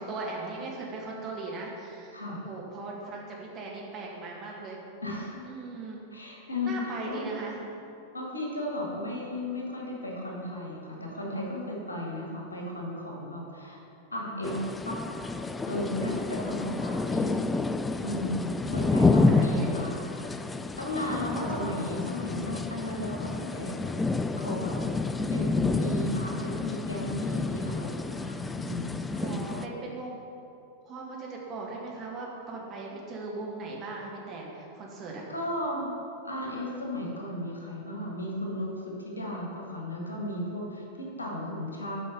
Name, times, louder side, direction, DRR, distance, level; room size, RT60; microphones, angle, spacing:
voice 1, 0.0-4.8 5.4-6.0 6.6-7.6 19.3-19.6 21.2-21.7 29.2-30.2 30.9-35.2, right 3 dB, 30° right, -3 dB, 1.7 m, -38 dB
voice 2, 5.0-5.4 6.1-7.2 8.1-13.8 14.1-15.0 15.6-17.4 18.0-20.2 20.8-23.9 24.4-24.8 25.3-29.7 35.3-35.9 36.2-42.0, left 1 dB, 80° left, -2 dB, 1.6 m, -35 dB
sound 1, 14.4-29.7, left 3 dB, 10° left, 0.3 m, -29 dB
8.3 x 5.2 x 5.5 m, 2.7 s
figure-of-eight pair, 90°, 0 cm